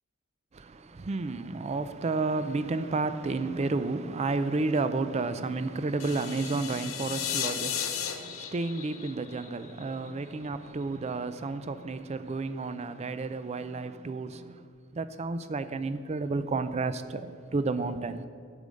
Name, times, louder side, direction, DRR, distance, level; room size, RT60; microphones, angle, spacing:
voice 1, 0.5-14.7 14.9-18.2, right 3 dB, 30° right, 0.4 m, -31 dB
sound 1, 6.0-10.1, left 9 dB, 70° left, 0.8 m, -35 dB
8.3 x 5.3 x 7.7 m
head